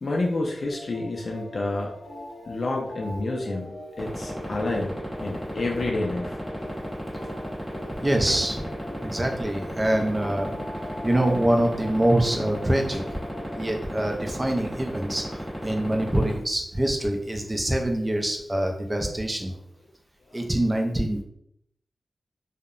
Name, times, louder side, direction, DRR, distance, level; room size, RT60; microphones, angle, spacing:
voice 1, 0.0-1.9 2.5-3.7 4.0-4.9 5.2-6.4 8.0-8.4 19.4-19.5, left 2 dB, 60° left, -1 dB, 0.4 m, -29 dB
sound 1, 0.7-13.7 14.0-14.1 14.5-14.6 14.9-15.5 16.2-17.7 18.6-18.9 19.5-19.9 20.2-20.5, left 1 dB, 90° left, 0.6 m, -42 dB
sound 2, 4.0-16.3, equal, ahead, 1.1 m, -34 dB
voice 2, 8.0-8.6 9.0-10.6 11.0-13.0 13.5-19.5 20.3-21.2, right 1 dB, 20° right, 3 dB, 0.4 m, -25 dB
2.7 x 2.0 x 2.4 m, 0.72 s
wide cardioid pair, 90°, 0 cm